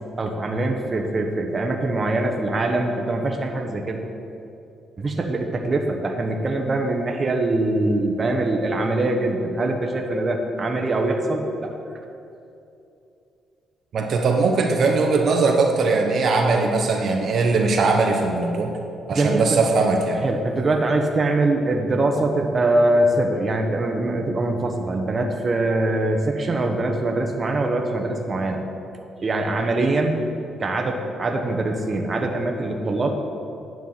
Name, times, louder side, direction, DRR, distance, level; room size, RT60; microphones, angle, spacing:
voice 1, 0.2-4.0 5.0-11.7 16.4-16.7 19.1-19.4 20.1-28.6 29.2-30.3 30.6-33.1, right 2 dB, 35° right, 3 dB, 1.0 m, -23 dB
voice 2, 13.9-18.7 19.1-20.2, right 3 dB, 60° right, 2 dB, 0.9 m, -20 dB
9.5 x 4.6 x 7.5 m, 2.7 s
cardioid pair, 90°, 0 cm